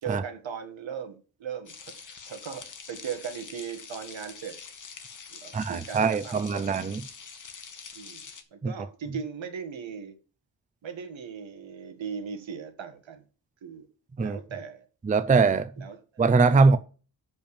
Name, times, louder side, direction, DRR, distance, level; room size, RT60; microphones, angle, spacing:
voice 1, 0.0-4.5 5.3-6.6 7.9-8.2 8.5-10.1 10.8-13.2 13.6-13.9 14.2-14.8 15.8-16.0, right 7 dB, 80° right, 1.7 m, -38 dB
sound 1, 1.7-8.4, left 5 dB, 45° left, 1.2 m, -45 dB
voice 2, 5.5-7.0 8.6-8.7 14.2-14.4 15.0-15.7 16.2-16.8, right 4 dB, 20° right, 0.4 m, -22 dB
6.8 x 5.3 x 7.1 m
wide cardioid pair, 165°, 45 cm